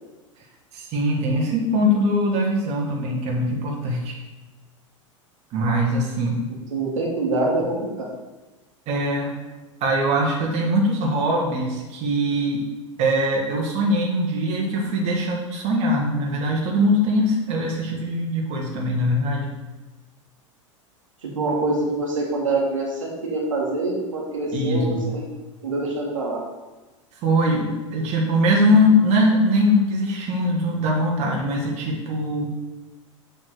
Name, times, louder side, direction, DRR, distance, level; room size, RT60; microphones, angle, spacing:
voice 1, 0.7-4.2 5.5-6.4 8.9-9.3 9.8-12.6 13.0-19.5 24.5-25.1 27.2-32.5, equal, 40° right, -1 dB, 1.9 m, -22 dB
voice 2, 6.7-8.1 21.2-25.2 25.6-26.4, right 2 dB, 80° right, -2 dB, 2.2 m, -25 dB
7.6 x 4.4 x 6.7 m, 1.1 s
hypercardioid pair, 90°, 17 cm